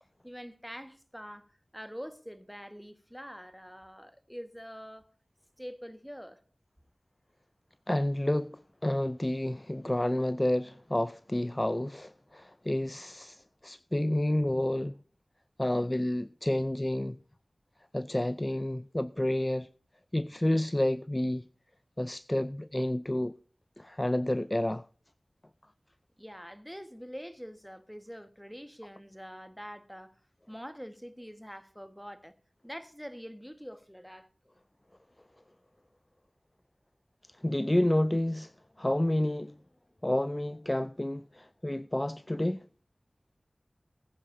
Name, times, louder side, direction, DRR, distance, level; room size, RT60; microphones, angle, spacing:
voice 1, 0.2-5.1 5.6-6.4 26.2-30.1 30.5-32.3 32.6-34.3, equal, ahead, 1.4 m, -45 dB
voice 2, 7.9-14.9 15.6-17.2 17.9-19.7 20.1-21.4 22.0-23.3 23.8-24.9 37.4-38.5 38.8-39.5 40.0-42.6, left 1 dB, 25° left, 0.4 m, -29 dB
19.0 x 9.8 x 2.6 m
wide cardioid pair, 45°, 0 cm